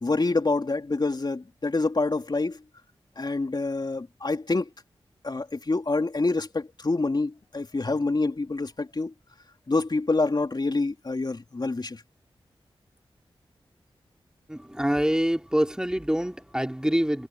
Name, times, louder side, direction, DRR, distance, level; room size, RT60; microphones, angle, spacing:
voice 1, 0.0-2.6 3.2-4.7 5.2-9.1 9.7-12.0, left 3 dB, 45° left, 3.1 m, -26 dB
voice 2, 14.5-17.3, equal, 5° right, 3.5 m, -25 dB
cardioid pair, 40°, 10 cm